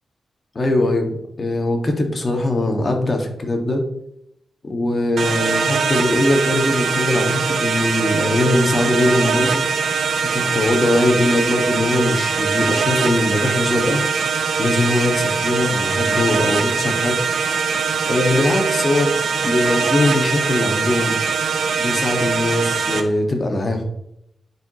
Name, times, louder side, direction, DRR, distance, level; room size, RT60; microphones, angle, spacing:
voice 1, 0.5-3.8 4.6-9.6 10.2-14.0 14.6-17.2 18.1-19.1 19.4-21.2 21.8-23.8, left 2 dB, 35° left, 3 dB, 1.6 m, -21 dB
sound 1, 5.2-23.0, right 5 dB, 75° right, 0.7 m, -21 dB
10.0 x 4.8 x 3.0 m, 0.77 s
cardioid pair, 85°, 0 cm